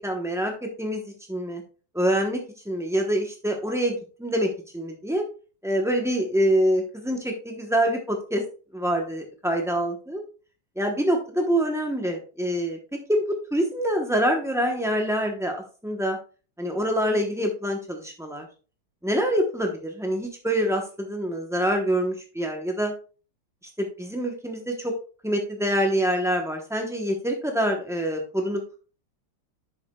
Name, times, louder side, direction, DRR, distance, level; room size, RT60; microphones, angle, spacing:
voice 1, 0.0-1.6 1.9-2.4 2.7-5.2 5.6-8.4 8.7-10.2 10.8-12.8 13.1-13.2 13.5-15.6 15.8-16.2 16.6-18.5 19.0-22.9 23.8-24.9 25.2-28.6, equal, 5° right, 1 dB, 0.3 m, -25 dB
10.5 x 7.0 x 2.3 m, 0.37 s
omnidirectional pair, 2.0 m